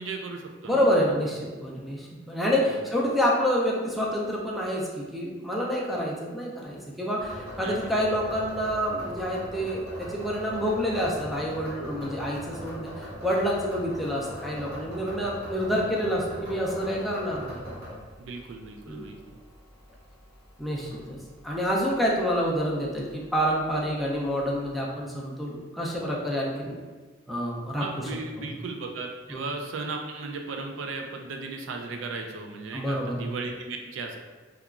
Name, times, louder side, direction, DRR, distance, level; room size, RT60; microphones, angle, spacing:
voice 1, 0.0-0.8 2.7-3.0 7.6-8.0 18.2-19.4 27.8-34.2, right 3 dB, 75° right, 3 dB, 0.4 m, -36 dB
voice 2, 0.7-17.6 18.9-19.1 20.6-21.2 21.4-26.8 27.3-27.8 29.3-29.5 32.7-33.2, equal, ahead, -4 dB, 0.4 m, -28 dB
sound 1, 7.2-24.7, equal, 60° right, 0.9 m, -42 dB
2.9 x 2.3 x 2.3 m, 1.4 s
head